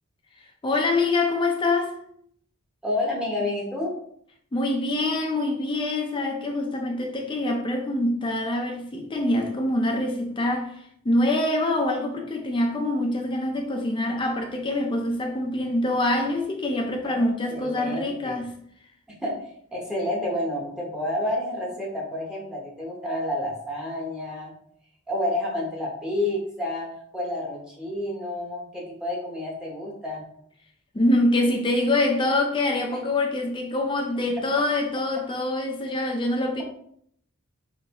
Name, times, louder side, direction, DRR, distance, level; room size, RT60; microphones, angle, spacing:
voice 1, 0.6-2.0 4.5-18.5 30.9-36.6, left 2 dB, 25° left, 0.5 m, -25 dB
voice 2, 2.8-4.0 17.0-18.3 19.1-19.4 19.7-24.5 25.1-26.9 27.1-30.2 32.9-33.0, left 1 dB, 5° right, 0.9 m, -29 dB
3.9 x 3.2 x 2.9 m
head